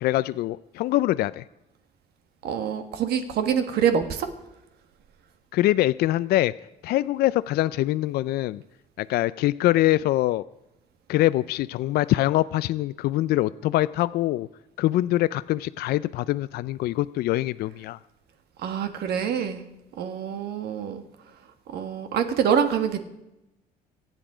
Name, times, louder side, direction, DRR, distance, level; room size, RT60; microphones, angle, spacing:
voice 1, 0.0-1.4 5.5-6.5 6.8-8.6 9.0-10.4 11.1-14.5 14.8-18.0, left 15 dB, 70° left, 16 dB, 0.4 m, -24 dB
voice 2, 2.4-4.3 18.6-19.6 19.9-21.0 21.7-23.0, right 8 dB, 70° right, 8 dB, 1.6 m, -25 dB
24.0 x 8.2 x 5.0 m, 0.89 s
cardioid pair, 110°, 17 cm